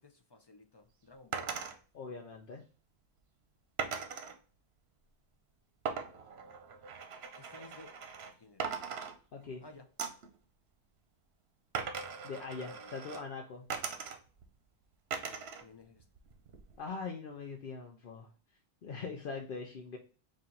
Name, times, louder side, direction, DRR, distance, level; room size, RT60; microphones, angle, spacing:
voice 1, 0.0-1.6 7.4-8.0 8.4-8.9 9.6-9.9 12.5-13.0 15.6-16.0, left 3 dB, 30° left, 4 dB, 0.6 m, -55 dB
sound 1, 1.3-1.8 3.8-4.4 5.9-8.3 8.6-9.6 10.0-10.3 11.7-13.2 13.7-14.4 15.1-15.6 16.0-16.8, right 6 dB, 80° right, 1.0 m, -40 dB
voice 2, 1.9-2.6 9.3-9.6 12.2-13.7 16.8-18.3 18.8-20.0, left 4 dB, 65° left, 2 dB, 0.8 m, -42 dB
4.3 x 2.6 x 3.8 m, 0.38 s
omnidirectional pair, 1.0 m